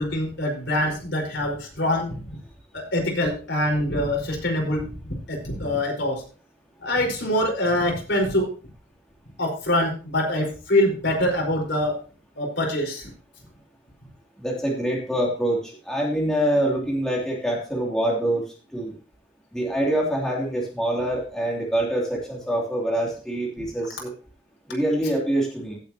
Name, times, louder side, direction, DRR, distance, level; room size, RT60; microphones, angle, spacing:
voice 1, 0.0-2.1 2.7-4.9 5.3-6.1 6.8-8.5 9.4-11.9 12.4-13.1, left 1 dB, 65° left, 1 dB, 4.8 m, -24 dB
voice 2, 14.4-18.4 18.7-18.9 19.5-24.1 24.7-25.8, right 1 dB, 5° left, -3 dB, 2.9 m, -25 dB
16.5 x 8.3 x 2.9 m, 0.37 s
head